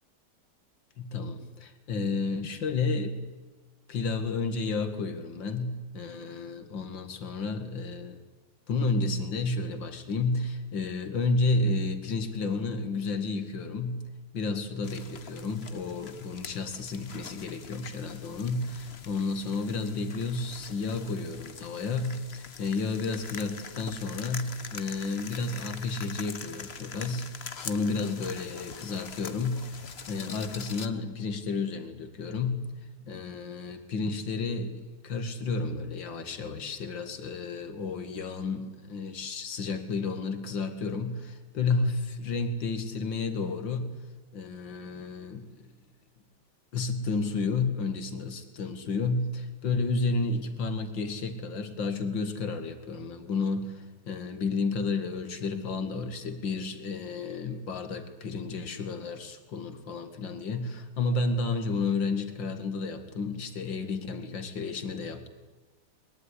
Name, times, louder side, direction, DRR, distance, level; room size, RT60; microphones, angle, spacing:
voice 1, 1.0-3.1 3.9-8.2 8.7-14.0 14.3-32.6 33.0-43.9 44.3-45.7 46.7-65.3, left 3 dB, 60° left, 9 dB, 2.8 m, -31 dB
sound 1, 14.8-30.9, left 6 dB, 40° left, 1.1 m, -44 dB
23.0 x 22.0 x 9.9 m, 1.2 s
omnidirectional pair, 2.3 m